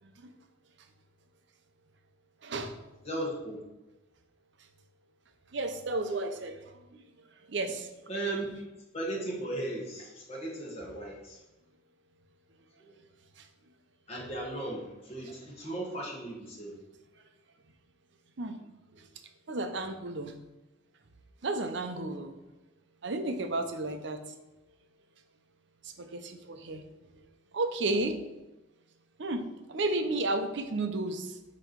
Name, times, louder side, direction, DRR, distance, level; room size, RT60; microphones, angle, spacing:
voice 1, 2.4-2.7 5.5-6.6 6.9-7.0 7.5-7.9 18.4-18.5 19.5-20.3 21.4-22.3 23.0-24.2 25.8-26.8 27.5-28.2 29.2-29.4 29.7-31.4, right 2 dB, 65° right, 7 dB, 0.7 m, -32 dB
voice 2, 3.0-3.6 8.1-8.6 8.9-11.4 12.8-13.1 14.1-16.7, right 1 dB, 35° left, -3 dB, 1.7 m, -36 dB
7.9 x 3.1 x 4.6 m, 1.0 s
head